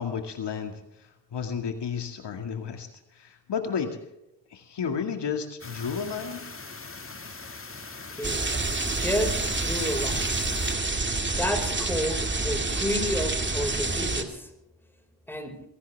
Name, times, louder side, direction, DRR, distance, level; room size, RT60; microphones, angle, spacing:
voice 1, 0.0-4.0 4.5-6.4, left 6 dB, 70° left, 5 dB, 2.2 m, -32 dB
sound 1, 5.6-10.7, left 4 dB, 30° left, 2.1 m, -41 dB
sound 2, 8.2-14.2, right 3 dB, 25° right, 2.4 m, -28 dB
voice 2, 9.0-10.3 11.4-14.5 15.3-15.6, equal, 5° left, 4 dB, 5.2 m, -30 dB
23.0 x 17.0 x 3.5 m, 0.84 s
cardioid pair, 65°, 43 cm